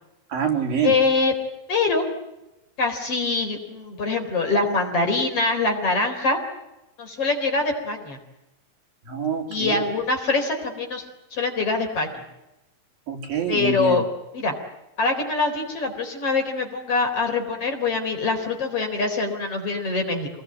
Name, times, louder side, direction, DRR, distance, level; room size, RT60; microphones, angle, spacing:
voice 1, 0.3-0.9 9.1-9.8 13.1-14.0, right 7 dB, 75° right, 2 dB, 4.9 m, -26 dB
voice 2, 0.8-1.3 1.7-2.0 2.8-6.4 7.0-8.2 9.5-11.0 11.3-12.2 13.5-14.0 14.3-14.5 15.0-20.3, left 3 dB, 40° left, 3 dB, 4.8 m, -24 dB
27.5 x 19.5 x 8.8 m, 0.95 s
omnidirectional pair, 4.1 m